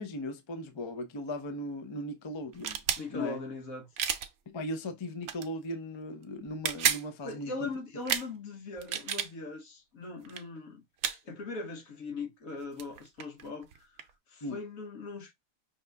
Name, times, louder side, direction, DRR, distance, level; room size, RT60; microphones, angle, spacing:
voice 1, 0.0-2.8 3.1-3.4 4.5-7.7 14.4-14.6, left 1 dB, 35° left, 0.5 m, -38 dB
sound 1, 2.5-3.0 4.0-4.3 5.2-5.5 6.5-7.0 8.0-8.3 8.8-9.3 10.2-10.4 11.0-11.2 12.5-12.6 12.8-14.1, right 9 dB, 65° right, 0.9 m, -31 dB
voice 2, 3.0-3.9 7.2-10.8 11.2-13.9 14.3-15.3, left 3 dB, 75° left, 1.5 m, -40 dB
5.7 x 2.5 x 3.3 m
omnidirectional pair, 1.4 m